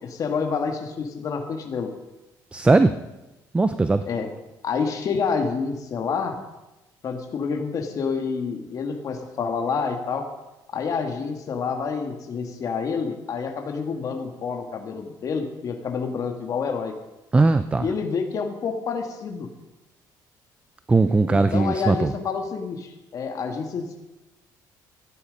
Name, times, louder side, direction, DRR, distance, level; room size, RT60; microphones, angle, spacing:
voice 1, 0.0-1.9 4.1-4.3 4.6-6.4 7.0-10.3 10.7-17.0 17.8-19.5 21.3-24.0, left 5 dB, 45° left, 4 dB, 1.7 m, -28 dB
voice 2, 2.5-3.0 3.5-4.0 17.3-17.9 20.9-22.1, right 3 dB, 15° right, 11 dB, 0.5 m, -19 dB
14.5 x 10.5 x 5.2 m, 1.0 s
cardioid pair, 120°, 8 cm